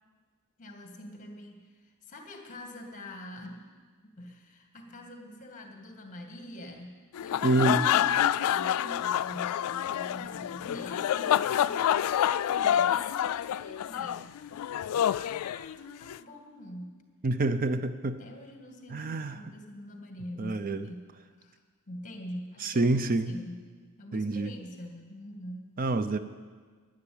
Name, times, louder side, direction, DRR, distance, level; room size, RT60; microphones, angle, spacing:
voice 1, 0.6-3.7 4.0-8.2 8.4-14.3 14.6-17.0 18.2-21.6 21.9-25.7, left 1 dB, 35° left, 3 dB, 2.0 m, -45 dB
sound 1, 7.1-16.2, left 10 dB, 85° left, 0.3 m, -28 dB
voice 2, 7.4-7.8 17.2-18.2 18.9-19.5 20.4-20.8 22.6-23.3 24.1-24.5 25.8-26.2, right 2 dB, 40° right, 11 dB, 0.5 m, -27 dB
11.5 x 11.0 x 8.7 m, 1.5 s
head